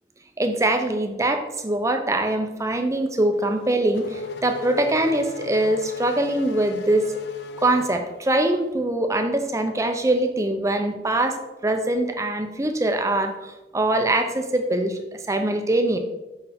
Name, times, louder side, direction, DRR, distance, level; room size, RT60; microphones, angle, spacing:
voice 1, 0.4-7.1 7.6-16.0, right 1 dB, 15° right, 6 dB, 0.6 m, -23 dB
Race car auto racing / Accelerating revving vroom, 3.4-8.6, left 5 dB, 60° left, 0.4 m, -37 dB
6.8 x 5.4 x 3.5 m, 1.1 s
head